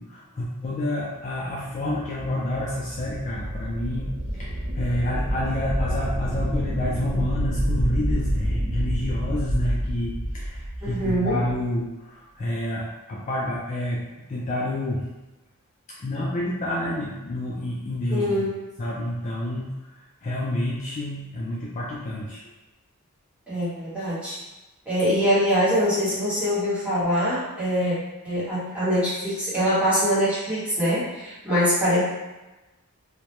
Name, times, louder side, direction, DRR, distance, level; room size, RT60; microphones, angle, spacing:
voice 1, 0.0-14.0 14.3-15.1 16.0-18.5 18.8-19.9 20.2-22.4, left 1 dB, 35° left, -6 dB, 0.4 m, -29 dB
sound 1, 1.6-11.6, equal, 65° right, 0.7 m, -28 dB
voice 2, 10.8-11.4 18.1-18.5 23.5-24.4 24.9-28.0 28.2-32.0, equal, 5° right, -11 dB, 1.0 m, -23 dB
2.2 x 2.1 x 2.9 m, 1.1 s
head